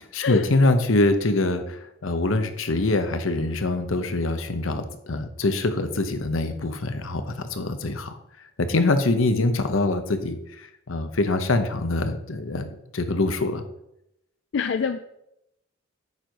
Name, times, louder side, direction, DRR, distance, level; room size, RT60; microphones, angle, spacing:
voice 1, 0.1-8.2 8.6-13.6, left 2 dB, 85° left, 9 dB, 1.0 m, -24 dB
voice 2, 14.5-15.0, left 6 dB, 60° left, 9 dB, 0.4 m, -26 dB
9.5 x 4.6 x 5.3 m, 0.82 s
head